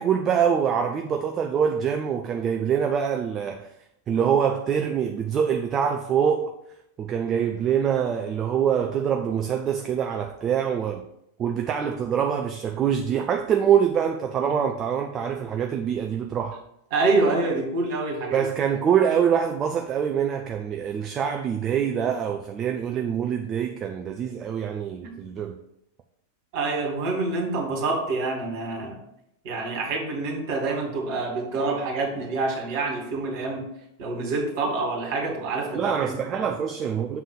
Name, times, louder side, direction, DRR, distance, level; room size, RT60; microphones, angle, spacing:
voice 1, 0.0-3.7 4.1-6.5 7.0-11.0 11.4-16.6 18.3-25.6 35.7-37.2, right 8 dB, 25° right, 0.5 m, -25 dB
voice 2, 16.9-18.5 25.0-25.1 26.5-29.0 29.4-33.7 34.0-36.5, right 3 dB, 45° right, 2.5 m, -27 dB
7.0 x 3.8 x 6.4 m
figure-of-eight pair, 90°, 0 cm